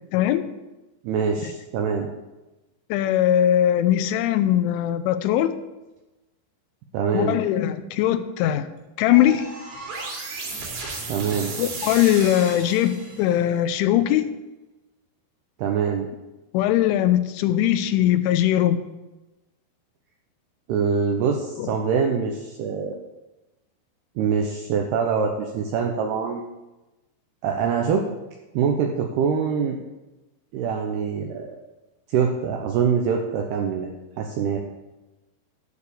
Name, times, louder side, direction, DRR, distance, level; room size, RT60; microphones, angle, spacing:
voice 1, 0.1-0.4 1.4-1.5 2.9-5.5 7.1-8.7 9.0-9.5 11.6-14.3 16.5-18.8 21.6-21.7, left 12 dB, 85° left, 11 dB, 3.1 m, -20 dB
voice 2, 1.0-2.1 6.9-7.4 11.1-11.5 15.6-16.1 20.7-23.0 24.2-26.5 27.4-28.0 28.5-29.8 30.5-31.6 32.1-33.9 34.2-34.6, right 6 dB, 75° right, 2 dB, 2.5 m, -24 dB
sound 1, 9.1-13.4, right 3 dB, 60° right, 3.8 m, -34 dB
12.0 x 4.8 x 8.4 m, 1.0 s
omnidirectional pair, 5.4 m